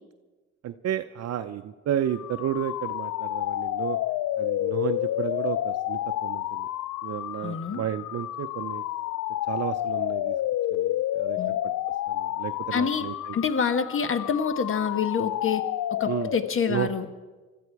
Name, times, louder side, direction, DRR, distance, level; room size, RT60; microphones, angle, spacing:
voice 1, 0.6-4.0 4.4-6.7 7.0-8.8 9.5-10.4 10.7-11.6 12.1-13.4 16.1-16.3 16.7-16.9, right 10 dB, 55° right, 9 dB, 0.6 m, -32 dB
sound 1, 2.1-16.7, left 14 dB, 75° left, 0.5 m, -30 dB
voice 2, 7.4-7.8 11.4-11.6 12.7-13.0 13.3-15.6 15.9-17.1, left 6 dB, 45° left, 10 dB, 1.3 m, -27 dB
21.5 x 13.5 x 4.7 m, 1.3 s
cardioid pair, 90°, 30 cm